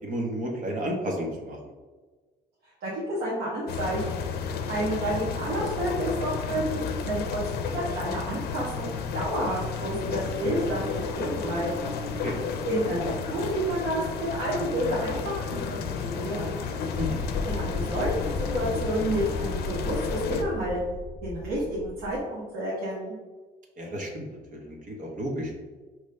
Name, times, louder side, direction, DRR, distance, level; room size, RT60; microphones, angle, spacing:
voice 1, 0.0-1.6 12.2-12.4 17.0-17.2 23.8-24.2 24.5-25.5, equal, 50° right, 0 dB, 1.2 m, -32 dB
voice 2, 2.8-6.8 7.0-11.7 12.7-16.5 17.4-23.1, right 1 dB, 70° right, -6 dB, 1.3 m, -30 dB
sound 1, 3.7-20.4, left 6 dB, 70° left, 0.5 m, -32 dB
sound 2, 9.4-20.5, equal, 20° right, 1.0 m, -42 dB
sound 3, 16.9-22.2, left 4 dB, 30° left, 0.8 m, -35 dB
5.2 x 3.1 x 3.3 m, 1.3 s
cardioid pair, 110°, 17 cm